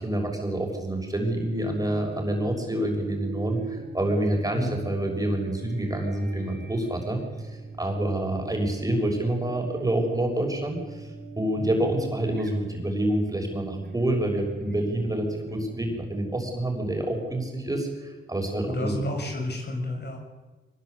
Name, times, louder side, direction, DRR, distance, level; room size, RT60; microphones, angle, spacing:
voice 1, 0.0-11.1 11.3-19.0, right 1 dB, 15° right, 2 dB, 6.5 m, -27 dB
sound 1, 1.6-16.7, right 3 dB, 55° right, 5.2 m, -42 dB
voice 2, 18.6-20.2, left 1 dB, 55° left, 3 dB, 6.7 m, -31 dB
24.5 x 20.5 x 8.4 m, 1.2 s
wide cardioid pair, 100°, 21 cm